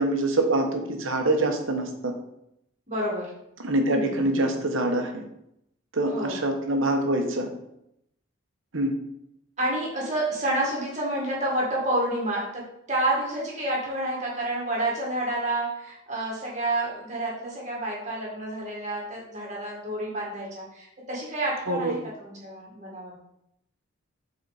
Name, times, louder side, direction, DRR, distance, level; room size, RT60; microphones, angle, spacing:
voice 1, 0.0-2.1 3.6-5.2 5.9-7.5 8.7-8.9 21.7-22.0, right 2 dB, 70° right, 4 dB, 1.1 m, -25 dB
voice 2, 2.9-3.3 3.9-4.2 6.1-6.4 9.6-12.6 12.9-23.1, right 1 dB, 35° right, -3 dB, 2.0 m, -29 dB
7.3 x 4.2 x 4.1 m, 0.79 s
head